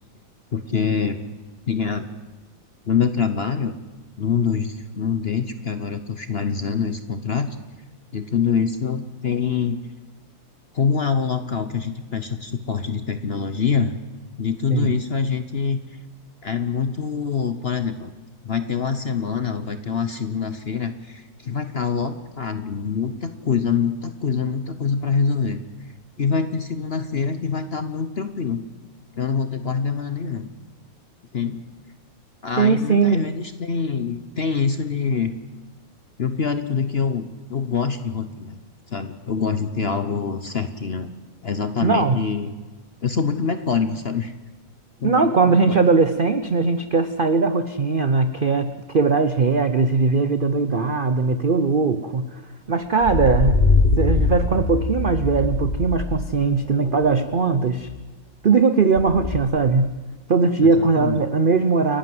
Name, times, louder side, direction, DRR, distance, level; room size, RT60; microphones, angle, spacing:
voice 1, 0.5-1.2 1.7-2.1 2.9-3.7 4.2-7.5 8.1-9.8 10.7-13.9 14.4-15.8 16.4-18.1 18.4-25.6 26.2-28.6 29.2-30.5 31.3-31.6 32.4-35.3 36.2-38.6 38.9-41.1 41.4-42.5 43.0-44.3 45.0-45.8 60.6-61.2, left 6 dB, 45° left, 10 dB, 0.8 m, -25 dB
voice 2, 32.6-33.2 41.8-42.2 45.0-52.4 52.7-53.6 54.0-57.9 58.4-59.9 60.3-62.0, right 4 dB, 55° right, 11 dB, 0.5 m, -19 dB
sound 1, 53.0-56.3 56.7-57.6 57.9-58.0 59.0-59.4, left 3 dB, 25° left, 1.2 m, -22 dB
29.0 x 11.5 x 7.8 m, 1.2 s
omnidirectional pair, 2.0 m